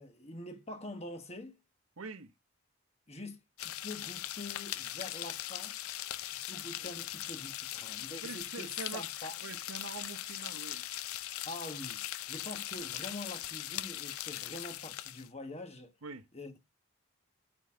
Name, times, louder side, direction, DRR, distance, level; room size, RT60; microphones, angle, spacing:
voice 1, 0.0-1.6 3.1-5.7 6.2-9.4 11.4-15.9 16.3-16.6, left 2 dB, 30° left, 1.2 m, -45 dB
voice 2, 2.0-2.3 6.8-6.9 8.2-9.0 9.4-10.9 16.0-16.3, right 4 dB, 85° right, 0.9 m, -44 dB
sound 1, 3.6-15.3, left 13 dB, 90° left, 0.5 m, -40 dB
9.2 x 3.9 x 3.7 m
head